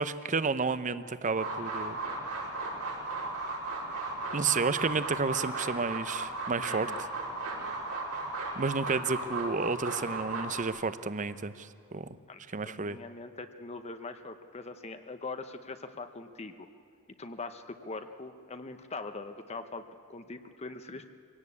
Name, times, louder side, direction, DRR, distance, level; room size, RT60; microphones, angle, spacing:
voice 1, 0.0-2.0 4.3-7.1 8.5-12.1 12.5-13.0, right 4 dB, 35° right, 14 dB, 0.7 m, -31 dB
sound 1, 1.3-10.6, right 3 dB, 80° right, 5.2 m, -36 dB
voice 2, 12.3-16.7 17.2-19.8 20.1-21.1, left 3 dB, 30° left, 8 dB, 0.9 m, -42 dB
24.0 x 17.5 x 8.5 m, 2.5 s
head